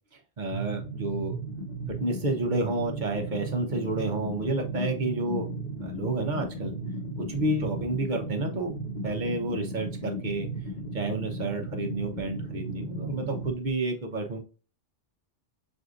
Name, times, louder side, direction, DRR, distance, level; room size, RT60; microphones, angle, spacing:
voice 1, 0.1-1.4 1.9-5.5 5.8-6.7 7.3-8.7 9.0-10.5 10.9-14.4, right 2 dB, 45° right, 3 dB, 0.9 m, -30 dB
sound 1, 0.5-13.5, right 2 dB, 45° left, 1.0 m, -35 dB
6.3 x 2.6 x 2.4 m, 0.36 s
omnidirectional pair, 1.2 m